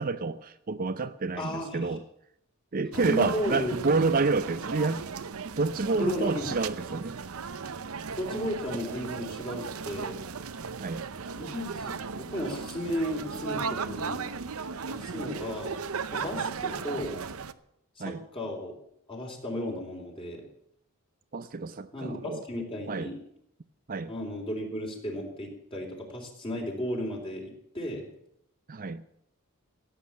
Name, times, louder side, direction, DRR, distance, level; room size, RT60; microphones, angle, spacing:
voice 1, 0.0-2.0 2.7-5.0 5.4-7.2 10.8-11.0 18.0-18.2 21.3-22.4 22.9-23.1 23.9-24.1 28.7-29.0, right 3 dB, 40° right, 11 dB, 0.5 m, -29 dB
voice 2, 1.3-1.8 2.9-3.8 5.9-6.5 8.2-10.2 11.3-14.3 14.9-15.8 16.1-17.2 18.0-18.7 19.1-20.4 21.9-23.1 24.1-28.1, equal, 25° left, 1 dB, 3.8 m, -34 dB
sound 1, 2.9-17.5, right 5 dB, 70° right, 0.7 m, -36 dB
15.5 x 8.4 x 8.6 m, 0.75 s
head